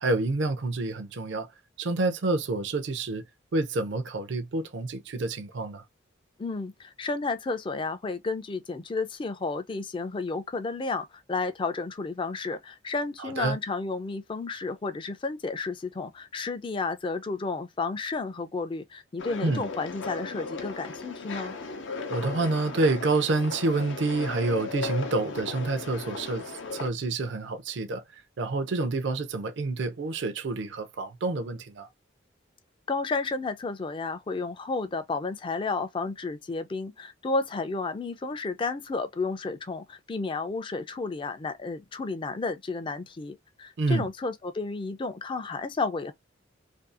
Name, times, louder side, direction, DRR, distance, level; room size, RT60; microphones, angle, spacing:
voice 1, 0.0-1.5 1.8-3.2 3.5-5.8 13.2-13.6 19.4-19.6 22.1-26.4 26.7-28.0 28.4-31.9 43.8-44.1, right 3 dB, 65° right, 0.5 m, -28 dB
voice 2, 6.4-21.6 32.9-46.1, left 3 dB, 25° left, 0.3 m, -32 dB
sound 1, 19.2-26.9, left 4 dB, 75° left, 0.5 m, -36 dB
2.6 x 2.3 x 2.4 m
head